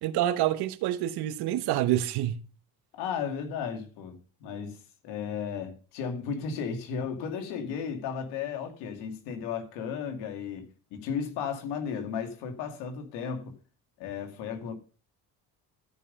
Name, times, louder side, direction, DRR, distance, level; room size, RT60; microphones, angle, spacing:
voice 1, 0.0-2.4, right 13 dB, 75° right, 1.2 m, -27 dB
voice 2, 2.9-4.8 5.0-13.6 14.0-14.7, left 6 dB, 85° left, 2.5 m, -34 dB
13.5 x 5.5 x 5.4 m
cardioid pair, 95°, 39 cm